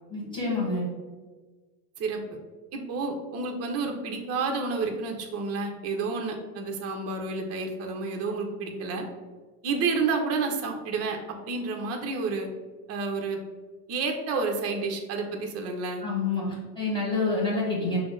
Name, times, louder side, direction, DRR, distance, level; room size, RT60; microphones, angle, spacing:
voice 1, 0.1-0.8 16.0-18.0, left 3 dB, 10° left, -5 dB, 1.5 m, -28 dB
voice 2, 2.7-9.0 9.6-11.2 11.5-12.5 12.9-13.4 13.9-16.0, right 4 dB, 35° right, 3 dB, 0.6 m, -30 dB
5.8 x 2.0 x 3.7 m, 1.3 s
supercardioid pair, 130°, 47 cm